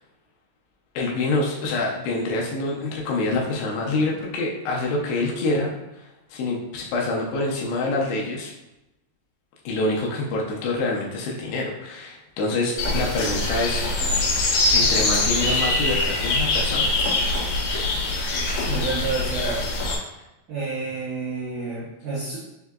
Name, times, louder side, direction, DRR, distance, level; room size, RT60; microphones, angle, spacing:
voice 1, 1.0-5.7 6.3-8.5 9.7-13.8 14.3-17.0, left 2 dB, 80° left, -2 dB, 2.7 m, -26 dB
sound 1, 12.8-20.0, left 2 dB, 60° left, 3.1 m, -23 dB
voice 2, 18.7-19.6 20.5-22.4, right 3 dB, 90° right, -8 dB, 1.7 m, -29 dB
6.4 x 2.7 x 2.3 m, 0.95 s
omnidirectional pair, 4.9 m